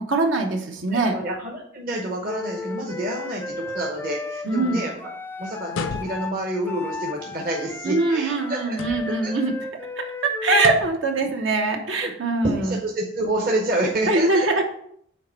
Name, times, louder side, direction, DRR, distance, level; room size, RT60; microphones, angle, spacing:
voice 1, 0.1-1.1 4.4-4.9 7.8-9.5 10.0-12.8 14.1-14.6, right 3 dB, 80° right, 3 dB, 1.0 m, -22 dB
voice 2, 0.9-4.9 5.4-8.9 9.2-9.3 11.4-12.1 12.4-14.5, right 1 dB, 45° right, -1 dB, 0.9 m, -28 dB
Wind instrument woodwind instrument, 2.3-10.8, left 3 dB, 10° left, 0.3 m, -34 dB
sound 1, 5.7-6.5 8.7-9.3 10.5-11.1, left 4 dB, 90° left, 0.5 m, -33 dB
6.5 x 4.3 x 4.4 m, 0.69 s
head